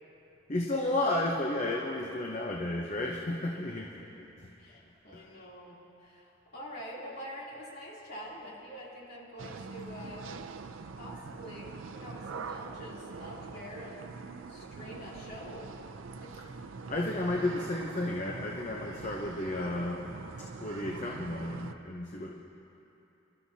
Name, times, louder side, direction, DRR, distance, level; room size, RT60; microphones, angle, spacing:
voice 1, 0.5-4.5 5.1-5.2 16.9-20.1 20.6-22.3, left 1 dB, 35° left, -2 dB, 0.8 m, -32 dB
voice 2, 4.6-10.3 11.0-14.0 14.5-15.7 16.2-16.3, equal, 50° left, -6 dB, 3.0 m, -46 dB
sound 1, 9.4-21.7, right 4 dB, 85° right, 0.5 m, -43 dB
28.0 x 13.0 x 2.8 m, 2.9 s
head